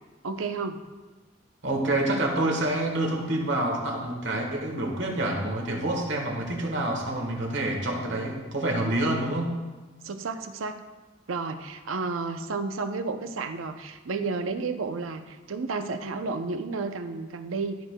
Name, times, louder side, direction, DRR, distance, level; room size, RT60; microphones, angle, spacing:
voice 1, 0.2-0.8 10.0-10.8 11.3-17.8, right 4 dB, 90° right, 8 dB, 0.6 m, -32 dB
voice 2, 1.6-9.6, right 1 dB, 65° right, 1 dB, 1.4 m, -27 dB
13.5 x 6.3 x 2.2 m, 1.2 s
head